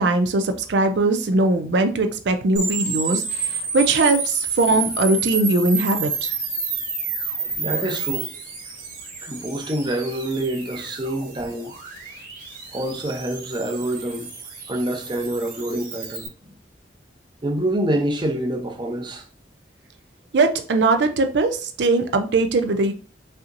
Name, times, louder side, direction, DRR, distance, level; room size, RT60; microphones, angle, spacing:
voice 1, 0.0-6.3 20.3-22.9, right 2 dB, 75° right, 0.5 m, -20 dB
sound 1, 2.6-16.3, right 4 dB, 50° right, 1.9 m, -30 dB
voice 2, 7.6-8.3 9.2-11.7 12.7-14.3 14.7-16.3 17.4-19.2, right 1 dB, 25° right, 0.7 m, -26 dB
5.5 x 2.8 x 2.5 m
head